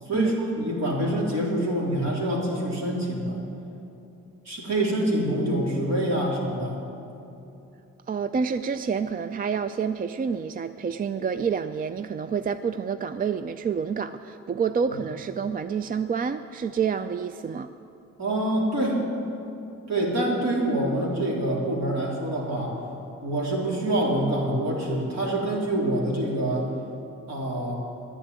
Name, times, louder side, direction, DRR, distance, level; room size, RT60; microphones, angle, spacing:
voice 1, 0.1-3.4 4.5-6.8 18.2-19.0 19.9-22.8 23.2-26.7 27.3-27.7, right 1 dB, 60° right, -2 dB, 3.7 m, -26 dB
voice 2, 8.1-17.7, right 6 dB, 30° right, 11 dB, 0.4 m, -28 dB
11.0 x 10.0 x 9.6 m, 2.8 s
cardioid pair, 90°, 30 cm